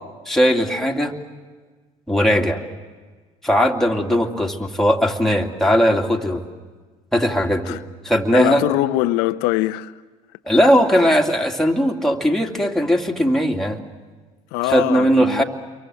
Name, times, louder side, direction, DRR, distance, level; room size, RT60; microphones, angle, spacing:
voice 1, 0.3-1.1 2.1-2.6 3.4-6.4 7.1-7.8 8.0-8.6 10.5-13.8 14.6-15.4, equal, ahead, 2.5 m, -18 dB
voice 2, 8.3-9.9 10.5-10.6 14.5-15.4, left 16 dB, 75° left, 0.8 m, -22 dB
29.0 x 23.5 x 7.8 m
supercardioid pair, 80°, 16 cm